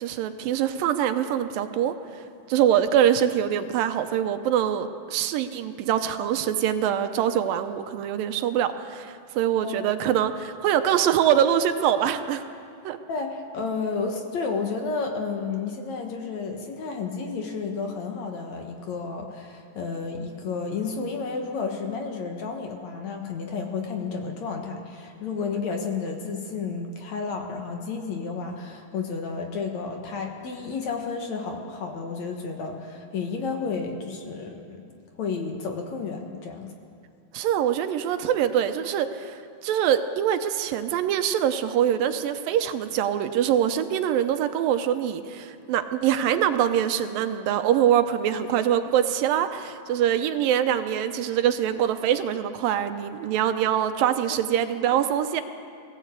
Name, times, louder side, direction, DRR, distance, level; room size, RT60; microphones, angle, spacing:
voice 1, 0.0-1.9 2.5-12.4 12.8-13.0 37.3-55.4, right 10 dB, 80° right, 9 dB, 2.5 m, -24 dB
voice 2, 13.1-34.9 35.2-36.7 54.3-54.4, left 4 dB, 60° left, 3 dB, 2.3 m, -31 dB
19.5 x 16.5 x 8.2 m, 2.4 s
omnidirectional pair, 4.1 m